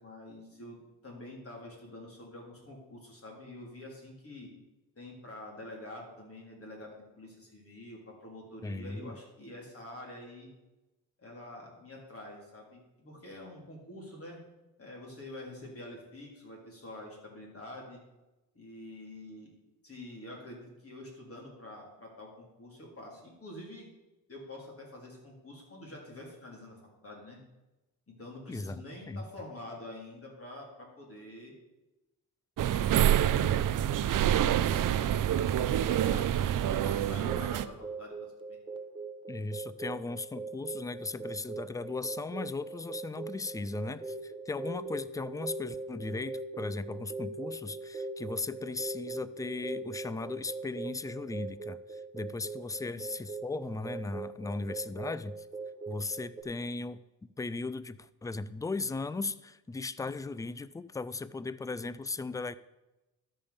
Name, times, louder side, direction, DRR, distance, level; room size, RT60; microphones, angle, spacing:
voice 1, 0.0-4.5 5.0-10.5 11.2-14.4 14.8-18.0 18.5-19.5 19.8-23.9 24.3-27.4 28.1-31.5 32.6-33.3 34.4-36.3 36.7-38.3 52.8-53.1, left 1 dB, 35° left, -1 dB, 3.5 m, -47 dB
voice 2, 8.6-9.2 28.5-29.2 39.3-55.3 55.9-57.0 57.4-62.5, left 3 dB, 10° left, 16 dB, 0.3 m, -37 dB
sound 1, 32.6-37.7, right 11 dB, 55° right, 0.5 m, -27 dB
sound 2, 37.3-56.4, right 3 dB, 10° right, 1.0 m, -41 dB
13.0 x 5.5 x 5.1 m, 1.0 s
cardioid pair, 80°, 40 cm